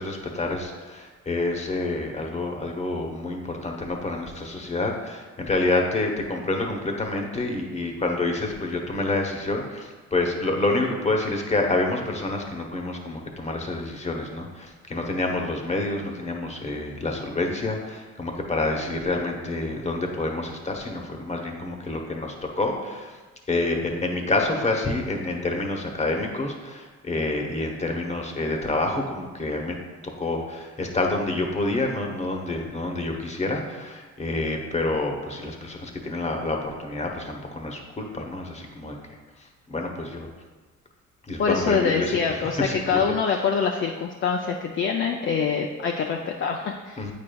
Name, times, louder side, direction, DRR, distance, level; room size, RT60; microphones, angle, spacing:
voice 1, 0.0-23.2 23.5-29.7 30.2-39.0 39.7-40.3 41.3-43.0 43.3-43.4 47.0-47.1, left 2 dB, 20° left, 2 dB, 1.0 m, -28 dB
voice 2, 41.4-47.0, left 6 dB, 40° left, 2 dB, 0.5 m, -25 dB
8.3 x 5.2 x 2.3 m, 1.3 s
cardioid pair, 90°, 30 cm